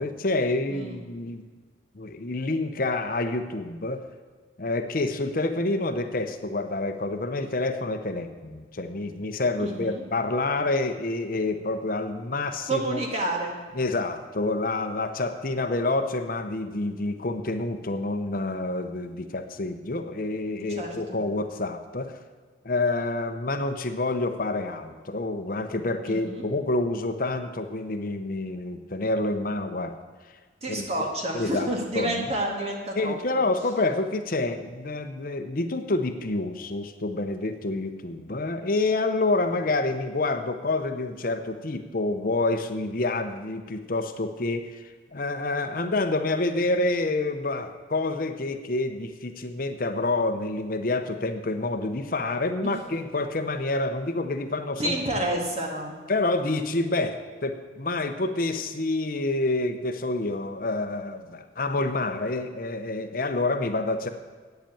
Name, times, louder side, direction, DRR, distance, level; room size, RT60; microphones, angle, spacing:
voice 1, 0.0-1.4 2.0-4.0 4.6-13.0 13.8-22.1 22.6-29.9 30.7-30.9 31.3-31.7 32.0-32.2 33.0-54.9 56.1-64.1, left 2 dB, 50° left, 7 dB, 0.7 m, -28 dB
voice 2, 0.7-1.0 9.6-10.0 12.7-13.5 20.6-21.2 26.1-26.5 30.6-33.4 52.6-52.7 54.8-55.9, right 1 dB, 35° right, 0 dB, 2.1 m, -29 dB
9.0 x 8.0 x 8.7 m, 1.5 s
head